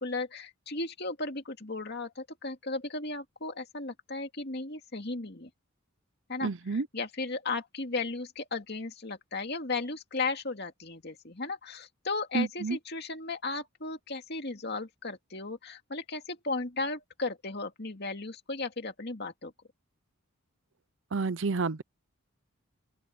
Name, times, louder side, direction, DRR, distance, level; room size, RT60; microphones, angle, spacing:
voice 1, 0.0-5.5 6.3-19.5, left 3 dB, 50° left, 2.3 m, -35 dB
voice 2, 6.4-6.9 12.3-12.8 21.1-21.8, right 4 dB, 60° right, 0.6 m, -29 dB
open air
head